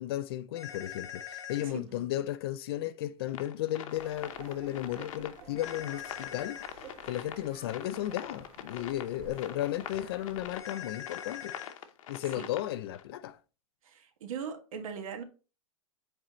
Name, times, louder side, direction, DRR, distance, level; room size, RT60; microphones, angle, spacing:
voice 1, 0.0-6.6 7.1-11.6 12.1-13.4, left 13 dB, 45° left, 0.4 m, -34 dB
sound 1, 0.6-1.7 5.6-6.7 10.6-11.7, left 9 dB, 15° left, 0.9 m, -42 dB
sound 2, 3.3-13.0, left 10 dB, 65° left, 0.9 m, -44 dB
sound 3, 3.9-10.6, right 5 dB, 35° right, 1.8 m, -52 dB
voice 2, 13.8-15.2, right 6 dB, 65° right, 1.6 m, -40 dB
7.4 x 4.4 x 3.0 m
supercardioid pair, 165°, 18 cm